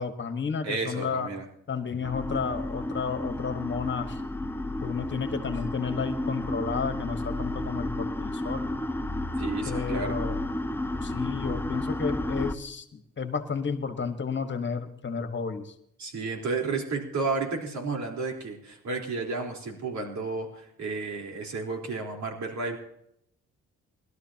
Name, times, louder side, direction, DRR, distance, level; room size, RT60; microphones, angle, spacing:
voice 1, 0.0-1.3 1.7-4.2 4.8-8.6 9.6-10.4 11.0-15.7, left 5 dB, 40° left, 9 dB, 1.5 m, -32 dB
voice 2, 0.6-1.4 9.4-10.2 16.0-22.8, right 3 dB, 70° right, 1 dB, 4.1 m, -32 dB
sound 1, 2.0-12.6, left 1 dB, 5° left, 0.7 m, -32 dB
21.5 x 12.5 x 2.9 m, 0.75 s
cardioid pair, 90°, 30 cm